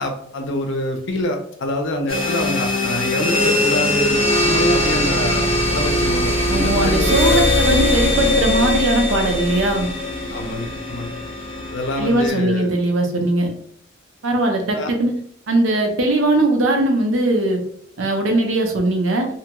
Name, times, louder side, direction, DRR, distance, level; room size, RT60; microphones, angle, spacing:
voice 1, 0.0-7.7 10.3-11.1 11.7-12.7 14.7-14.9, left 1 dB, 65° left, 5 dB, 0.5 m, -26 dB
sound 1, 2.1-12.3, left 1 dB, 30° left, 0.7 m, -20 dB
voice 2, 6.5-9.9 12.0-13.5 14.2-15.1 15.5-17.6 18.0-19.3, right 2 dB, 80° right, 3 dB, 0.6 m, -19 dB
2.6 x 2.2 x 2.8 m, 0.65 s
head